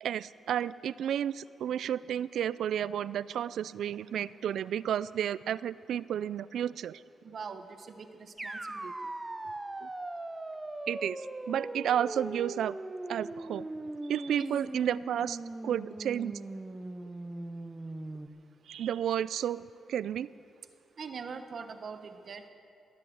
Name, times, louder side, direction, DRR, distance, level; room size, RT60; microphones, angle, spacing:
voice 1, 0.0-7.0 9.8-9.9 10.9-12.8 13.1-13.7 14.1-16.4 18.7-20.3, right 10 dB, 75° right, 18 dB, 0.3 m, -32 dB
voice 2, 7.2-8.9 14.4-14.5 21.0-22.5, right 5 dB, 45° right, 8 dB, 1.0 m, -43 dB
sound 1, 8.4-18.3, right 2 dB, 15° right, 0.6 m, -40 dB
15.5 x 10.5 x 8.0 m, 2.6 s
cardioid pair, 135°, 0 cm